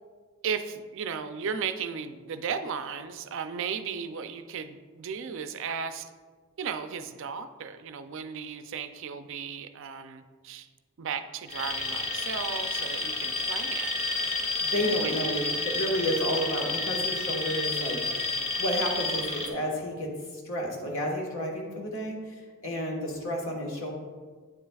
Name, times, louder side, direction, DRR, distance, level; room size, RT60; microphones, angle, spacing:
voice 1, 0.4-6.1 6.6-10.7 11.0-14.1 14.7-15.5, right 6 dB, 60° right, 9 dB, 0.4 m, -35 dB
Alarm, 11.5-19.5, left 3 dB, 30° left, 0.9 m, -30 dB
voice 2, 14.6-18.3 18.6-23.9, equal, 65° left, 0 dB, 1.4 m, -31 dB
9.3 x 7.4 x 2.3 m, 1.5 s
head